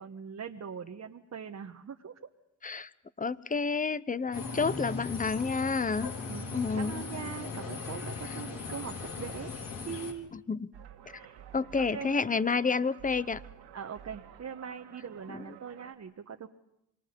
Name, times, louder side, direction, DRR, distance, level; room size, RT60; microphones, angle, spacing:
voice 1, 0.0-2.1 6.3-9.5 9.8-10.3 11.2-11.5 11.8-12.1 13.7-16.5, right 7 dB, 40° right, 4 dB, 1.3 m, -41 dB
voice 2, 3.2-6.1 6.5-7.0 10.5-10.7 11.5-13.4 15.3-15.4, left 4 dB, 20° left, 17 dB, 0.9 m, -29 dB
sound 1, 4.3-10.1, left 4 dB, 55° left, 4.5 m, -38 dB
sound 2, 10.7-15.9, right 10 dB, 85° right, 2.5 m, -51 dB
27.5 x 23.0 x 5.4 m, 0.83 s
supercardioid pair, 65°, 39 cm